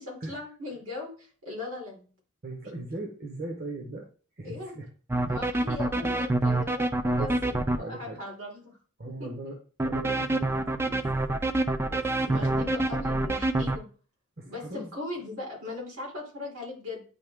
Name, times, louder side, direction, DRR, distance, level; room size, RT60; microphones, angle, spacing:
voice 1, 0.0-2.1 4.4-4.7 5.3-7.3 7.7-8.8 9.2-9.3 12.2-13.9 14.4-17.0, left 2 dB, 85° right, -2 dB, 3.6 m, -39 dB
voice 2, 2.4-4.1 4.4-4.9 5.2-5.4 7.2-8.2 9.0-9.6 9.8-11.4 11.9-12.6 14.4-14.9, right 2 dB, 45° right, 2 dB, 1.0 m, -39 dB
sound 1, 5.1-7.8 9.8-13.8, right 2 dB, 10° right, 0.4 m, -26 dB
9.5 x 3.3 x 3.6 m, 0.38 s
head